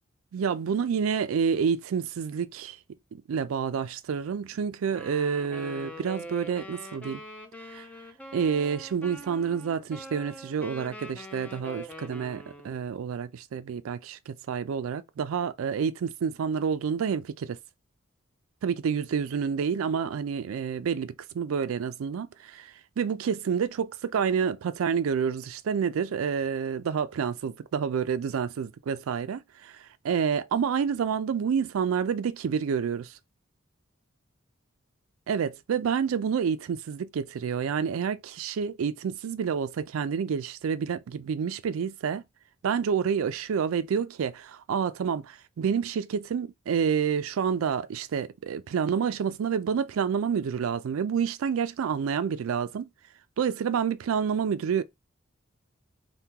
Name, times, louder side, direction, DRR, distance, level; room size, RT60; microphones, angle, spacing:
voice 1, 0.3-2.8 3.1-7.2 7.7-7.9 8.3-17.6 18.6-33.1 35.3-42.2 42.6-52.9 53.4-54.8, right 7 dB, 85° right, 0.4 m, -28 dB
Wind instrument woodwind instrument, 4.9-12.8, equal, 5° left, 0.4 m, -43 dB
3.5 x 2.2 x 2.8 m
head